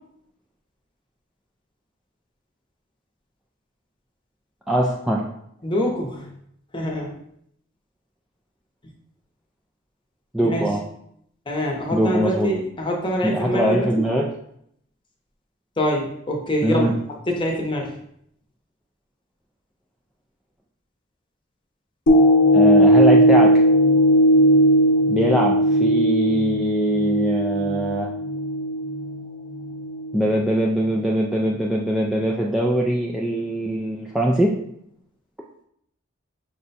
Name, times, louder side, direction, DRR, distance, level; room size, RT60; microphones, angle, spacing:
voice 1, 4.7-5.3 10.3-10.8 11.9-12.5 13.2-14.3 16.6-16.9 22.5-23.6 25.1-28.1 30.1-34.6, right 1 dB, ahead, -3 dB, 0.3 m, -22 dB
voice 2, 5.6-6.3 6.7-7.1 10.4-10.7 11.5-14.0 15.8-16.9 17.3-17.9, left 1 dB, 25° left, 0 dB, 0.8 m, -25 dB
sound 1, 22.1-30.5 31.0-31.1, equal, 65° left, 0.8 m, -18 dB
5.9 x 2.2 x 4.0 m, 0.72 s
head